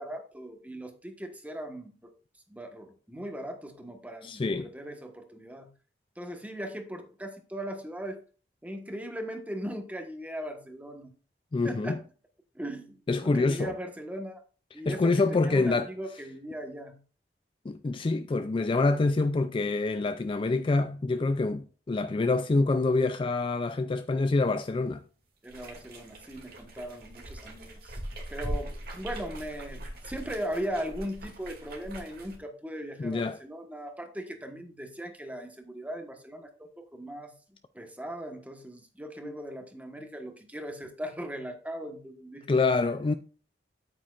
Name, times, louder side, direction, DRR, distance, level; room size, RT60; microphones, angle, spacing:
voice 1, 0.0-2.1 2.5-5.7 6.2-8.2 8.6-11.1 11.6-12.0 12.5-14.4 14.7-17.0 25.4-28.0 28.3-37.3 37.7-42.6, equal, 10° right, 1.2 m, -39 dB
voice 2, 4.2-4.7 11.5-12.0 13.1-13.7 14.9-15.9 17.7-25.0 33.0-33.4 39.2-39.3 42.5-43.1, left 3 dB, 30° left, 0.4 m, -26 dB
sound 1, 25.4-32.4, right 1 dB, 60° right, 2.3 m, -40 dB
8.9 x 8.5 x 2.4 m
head